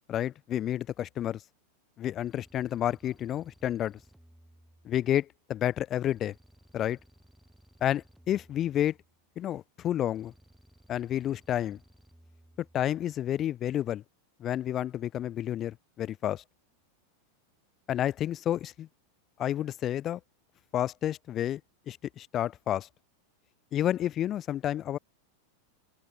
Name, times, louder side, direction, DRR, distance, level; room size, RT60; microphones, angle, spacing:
voice 1, 0.1-1.4 2.0-4.0 4.8-6.3 6.7-7.0 7.8-9.0 9.4-10.3 10.9-11.8 12.7-14.0 14.4-16.4 17.9-18.9 19.4-20.2 20.7-21.6 21.9-22.9 23.7-25.0, left 11 dB, 35° left, 0.3 m, -30 dB
sound 1, 2.2-5.3 6.1-9.4 10.2-13.0, right 1 dB, ahead, 5.5 m, -60 dB
open air
hypercardioid pair, 95°, 0 cm